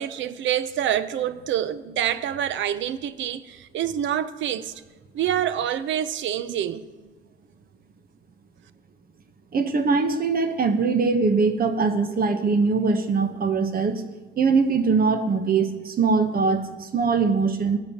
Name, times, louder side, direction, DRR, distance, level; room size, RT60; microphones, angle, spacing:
voice 1, 0.0-4.7 5.1-7.1, right 10 dB, 75° right, 0.6 m, -27 dB
voice 2, 9.5-14.0 14.4-17.8, right 4 dB, 50° right, 1.0 m, -22 dB
15.5 x 8.9 x 2.9 m
cardioid pair, 90°, 20 cm